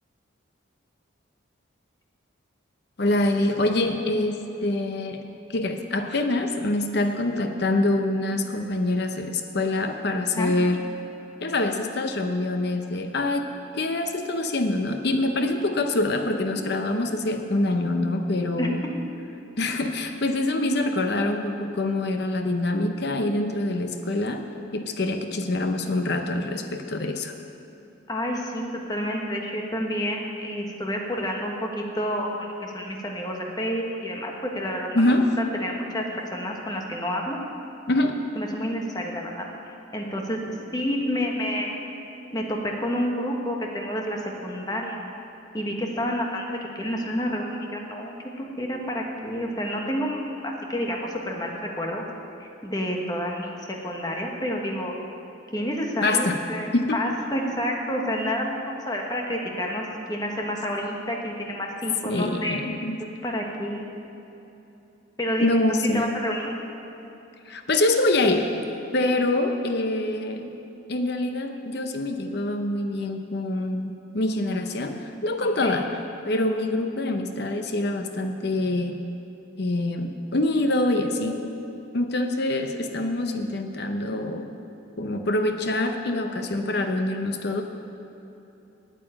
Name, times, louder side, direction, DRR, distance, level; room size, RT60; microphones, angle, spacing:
voice 1, 3.0-5.2 5.5-10.8 11.4-13.5 13.7-18.8 19.6-24.4 24.7-27.3 34.9-35.4 37.9-38.2 56.0-56.4 56.7-57.0 62.0-63.0 65.4-66.1 67.5-68.5 68.9-70.5 70.9-79.0 79.6-81.4 81.9-84.5 85.0-87.6, left 2 dB, 55° left, 6 dB, 0.7 m, -25 dB
voice 2, 28.1-35.1 35.6-36.0 36.3-37.4 38.4-39.5 39.9-41.9 42.3-45.0 45.5-52.0 52.4-54.9 55.5-62.6 63.2-63.8 65.2-65.5 65.9-66.5 75.4-75.8, equal, 20° left, 0 dB, 1.2 m, -29 dB
9.1 x 8.7 x 8.8 m, 2.9 s
head